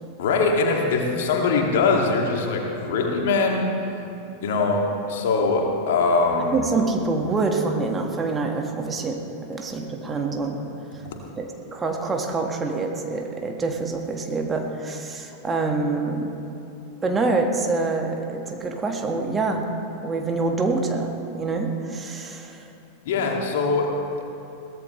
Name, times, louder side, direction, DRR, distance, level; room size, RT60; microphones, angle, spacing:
voice 1, 0.2-3.7 4.4-6.6 11.0-11.1 23.1-23.9, left 4 dB, 55° left, 1 dB, 2.3 m, -22 dB
voice 2, 6.5-9.2 9.5-10.7 11.4-16.3 17.0-19.7 20.0-22.7, right 3 dB, 15° right, 2 dB, 1.6 m, -26 dB
22.5 x 17.0 x 3.2 m, 2.8 s
figure-of-eight pair, 90°, 0 cm